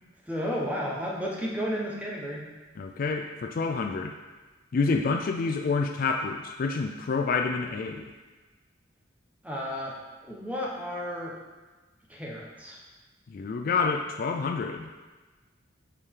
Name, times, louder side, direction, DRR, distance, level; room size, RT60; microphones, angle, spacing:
voice 1, 0.3-2.4 9.4-9.9 10.2-11.3 12.1-12.8, equal, 10° right, -4 dB, 1.1 m, -32 dB
voice 2, 2.8-4.1 4.7-8.1 13.3-14.9, left 4 dB, 50° left, 4 dB, 0.4 m, -28 dB
6.7 x 4.9 x 3.7 m, 1.3 s
head